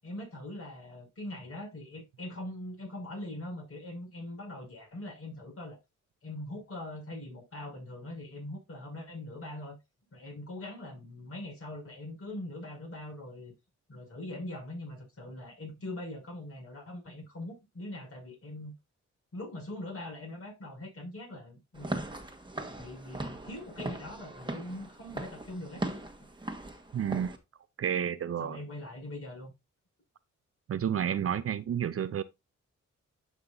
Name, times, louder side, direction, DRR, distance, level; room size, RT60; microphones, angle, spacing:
voice 1, 0.0-5.8 6.2-9.8 10.1-13.5 13.9-18.7 19.3-22.0 22.7-25.8 28.4-29.5, left 1 dB, 50° left, 6.0 m, -42 dB
Walk footsteps / Siren, 21.7-27.4, right 2 dB, 15° right, 1.6 m, -39 dB
voice 2, 26.9-27.4 27.8-28.6 30.7-32.2, right 9 dB, 50° right, 0.6 m, -30 dB
11.5 x 5.8 x 2.6 m
cardioid pair, 75°, 29 cm